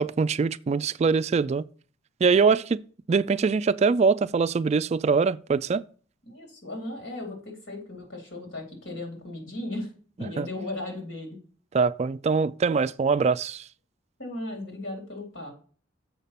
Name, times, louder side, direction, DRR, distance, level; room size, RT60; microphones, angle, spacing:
voice 1, 0.0-1.6 2.2-2.8 3.1-5.8 10.4-10.5 11.7-13.6, right 5 dB, 35° right, 0.3 m, -23 dB
voice 2, 6.3-9.9 10.2-11.4 14.2-15.5, left 1 dB, 75° left, 3.7 m, -36 dB
7.3 x 5.5 x 5.7 m
head